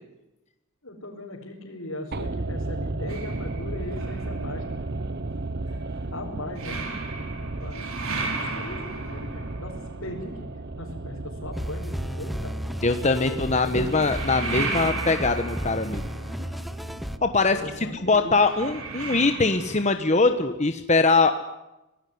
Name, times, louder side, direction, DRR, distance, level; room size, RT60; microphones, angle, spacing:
voice 1, 0.8-4.8 6.1-6.8 7.4-7.9 8.3-9.7 10.0-10.5 10.8-12.5 13.2-13.8 17.5-18.3, left 1 dB, 70° left, -3 dB, 5.1 m, -38 dB
sound 1, 2.1-20.3 20.6-20.7, right 2 dB, 45° right, 1.0 m, -36 dB
sound 2, 3.1-11.6 13.7-19.9, right 3 dB, 70° right, 5.2 m, -36 dB
sound 3, 11.5-17.2, equal, ahead, 0.8 m, -33 dB
voice 2, 12.8-16.0 17.2-21.4, left 3 dB, 30° left, 8 dB, 1.2 m, -22 dB
25.5 x 18.5 x 9.5 m, 0.99 s
head